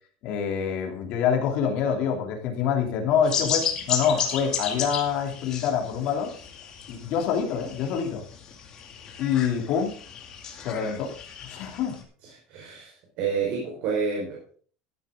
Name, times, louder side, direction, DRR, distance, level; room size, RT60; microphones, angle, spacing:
voice 1, 0.2-6.3 6.9-8.2 9.2-9.9 10.6-11.1 11.4-12.0, left 7 dB, 45° left, 3 dB, 2.9 m, -26 dB
sound 1, 3.2-12.0, left 7 dB, 25° left, 2.4 m, -33 dB
voice 2, 12.2-14.6, right 5 dB, 45° right, 0 dB, 4.5 m, -30 dB
14.0 x 11.5 x 3.7 m, 0.43 s
cardioid pair, 180°, 2 cm